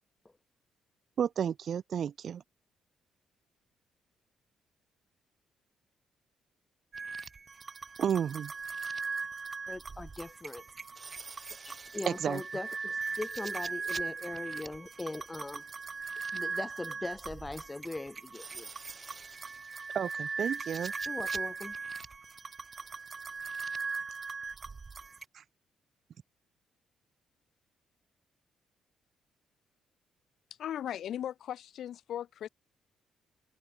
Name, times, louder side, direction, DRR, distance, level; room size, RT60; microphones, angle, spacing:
voice 1, 1.2-2.4 8.0-8.5 12.1-12.4 19.9-20.9, right 8 dB, 60° right, 0.7 m, -31 dB
sound 1, 6.9-25.2, right 4 dB, 35° right, 4.2 m, -39 dB
voice 2, 9.7-10.6 11.6-15.6 16.3-18.7 21.1-21.8, left 2 dB, 15° left, 1.1 m, -40 dB
voice 3, 30.6-32.5, left 10 dB, 70° left, 5.7 m, -37 dB
cardioid pair, 90°, 0 cm